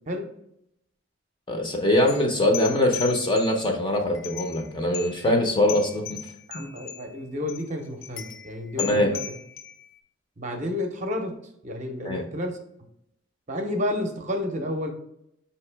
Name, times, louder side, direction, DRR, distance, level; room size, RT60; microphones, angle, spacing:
voice 1, 1.5-6.2 8.8-9.2 12.0-12.2, left 1 dB, 25° left, 2 dB, 0.6 m, -23 dB
sound 1, 2.1-3.7 4.1-4.7 4.9-5.4 5.7-7.1 7.5-7.7 8.0-10.0, left 10 dB, 75° left, 0.5 m, -38 dB
voice 2, 6.5-9.2 10.4-11.3 11.6-12.6 13.5-14.9, left 1 dB, 35° right, 3 dB, 0.6 m, -30 dB
5.2 x 2.8 x 3.3 m, 0.78 s
head